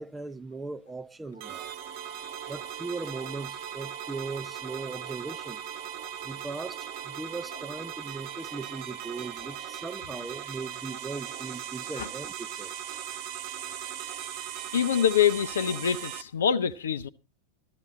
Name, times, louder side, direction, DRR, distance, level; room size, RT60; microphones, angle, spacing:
voice 1, 0.0-1.7 2.5-5.6 6.2-12.7, right 3 dB, 10° right, 0.6 m, -39 dB
Wind instrument woodwind instrument, 1.3-9.3, right 7 dB, 80° right, 3.7 m, -47 dB
sound 1, 1.4-16.2, right 10 dB, 45° right, 0.8 m, -39 dB
voice 2, 14.7-17.1, left 8 dB, 65° left, 0.6 m, -25 dB
13.5 x 13.0 x 4.0 m
figure-of-eight pair, 90°, 0 cm